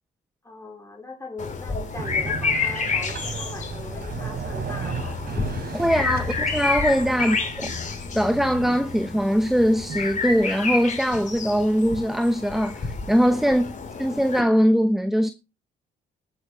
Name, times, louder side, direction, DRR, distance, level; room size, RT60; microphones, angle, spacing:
voice 1, 0.4-5.4 5.8-6.3 7.2-7.6 13.4-13.6, left 3 dB, 15° left, 4.1 m, -40 dB
sound 1, 1.4-14.4, left 4 dB, 40° left, 3.7 m, -30 dB
sound 2, 1.9-10.4, right 5 dB, 50° right, 3.3 m, -35 dB
voice 2, 5.7-7.4 8.1-13.6 14.0-15.3, equal, ahead, 0.8 m, -21 dB
19.0 x 8.0 x 3.1 m
cardioid pair, 90°, 20 cm